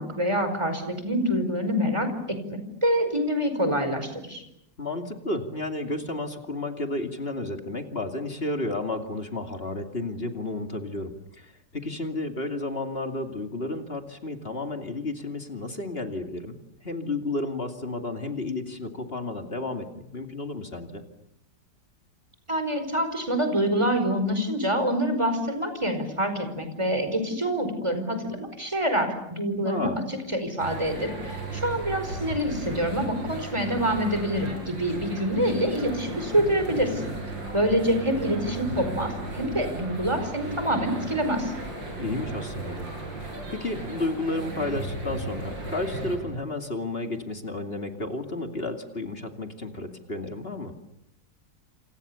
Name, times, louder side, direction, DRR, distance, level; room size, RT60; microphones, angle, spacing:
voice 1, 0.0-4.4 22.5-29.9 30.3-37.1 37.5-41.5, equal, 15° right, 8 dB, 4.9 m, -26 dB
voice 2, 4.8-16.6 16.8-19.9 20.1-21.0 29.6-30.0 42.0-42.9 43.2-50.7, left 2 dB, 30° left, 5 dB, 2.7 m, -32 dB
sound 1, 30.6-46.2, right 2 dB, 85° right, 8.4 m, -35 dB
28.5 x 28.5 x 7.0 m, 0.80 s
omnidirectional pair, 2.0 m